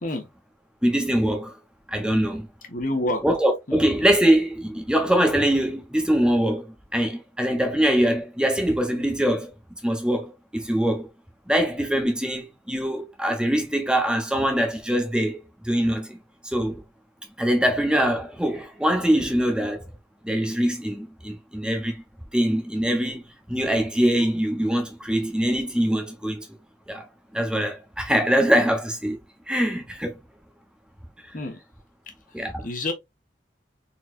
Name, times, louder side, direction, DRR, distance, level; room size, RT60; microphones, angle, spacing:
voice 1, 0.8-1.5 1.9-2.5 3.2-9.5 9.8-11.1 11.5-16.2 16.4-16.8 17.4-19.8 20.2-22.0 22.3-26.5 26.9-27.1 27.3-29.2 29.5-30.2 32.3-32.7, equal, 5° right, 1.1 m, -23 dB
voice 2, 2.7-3.2 3.7-3.8 31.3-31.6 32.4-32.9, left 1 dB, 50° left, 1.2 m, -28 dB
4.2 x 3.9 x 2.5 m
head